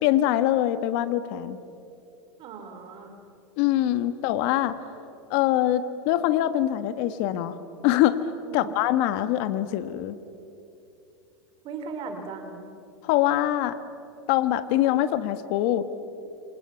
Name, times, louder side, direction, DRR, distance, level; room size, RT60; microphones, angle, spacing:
voice 1, 0.0-1.6 3.6-4.8 5.3-7.6 7.8-8.2 8.5-10.2 13.0-13.8 14.3-15.8, left 13 dB, 55° left, 11 dB, 1.6 m, -23 dB
voice 2, 2.4-3.1 8.4-8.7 11.6-12.7, right 4 dB, 40° right, 4 dB, 3.6 m, -37 dB
28.5 x 26.5 x 7.2 m, 2.8 s
supercardioid pair, 125°, 14 cm